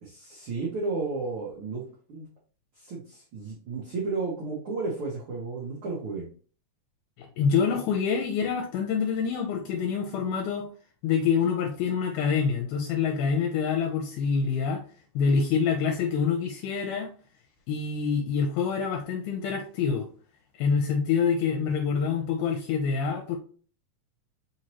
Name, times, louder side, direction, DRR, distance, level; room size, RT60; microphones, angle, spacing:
voice 1, 0.0-1.8 2.1-2.3 2.8-6.3, right 3 dB, 90° right, -3 dB, 1.2 m, -33 dB
voice 2, 7.4-10.7 11.0-14.8 15.2-17.1 17.7-20.1 20.6-23.4, left 6 dB, 80° left, 1 dB, 2.1 m, -26 dB
4.9 x 3.0 x 2.9 m, 0.40 s
omnidirectional pair, 3.7 m